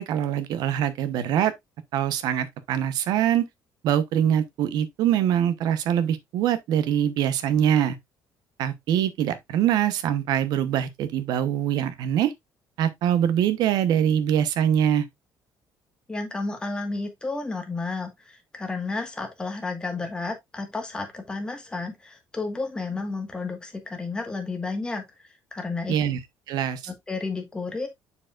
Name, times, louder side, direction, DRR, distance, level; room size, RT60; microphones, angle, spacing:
voice 1, 0.0-1.5 1.9-3.5 3.8-8.0 8.6-12.3 12.8-15.1 25.9-26.2 26.5-26.8, right 10 dB, 65° right, 1.0 m, -23 dB
voice 2, 16.1-26.0 26.9-27.9, left 3 dB, 10° left, 1.5 m, -32 dB
7.1 x 6.7 x 2.5 m
cardioid pair, 170°, 7 cm